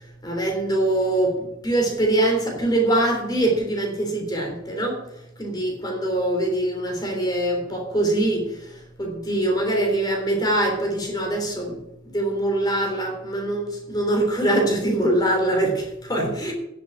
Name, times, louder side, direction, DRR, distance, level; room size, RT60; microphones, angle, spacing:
voice 1, 0.2-5.0 5.4-8.5 9.0-11.8 12.0-16.5, right 1 dB, 20° left, 1 dB, 3.5 m, -23 dB
10.0 x 8.6 x 8.3 m, 0.86 s
head